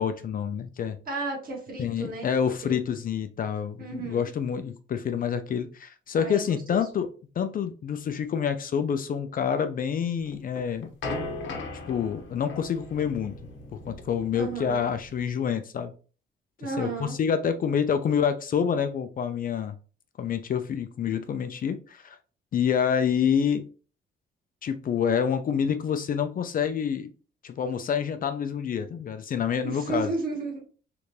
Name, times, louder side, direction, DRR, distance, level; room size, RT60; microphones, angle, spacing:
voice 1, 0.0-1.0 1.8-7.1 7.4-10.9 11.9-13.4 13.9-15.9 16.8-19.8 20.2-22.2 22.5-23.6 24.6-27.1 27.4-30.1, left 7 dB, 45° left, 0.4 m, -27 dB
voice 2, 1.1-2.3 2.6-2.8 3.8-4.3 6.1-6.8 14.3-14.8 16.6-17.2 29.6-30.7, right 3 dB, 45° right, 1.6 m, -33 dB
sound 1, 10.3-15.2, left 2 dB, 70° left, 0.8 m, -38 dB
3.3 x 2.6 x 3.2 m
cardioid pair, 90°, 20 cm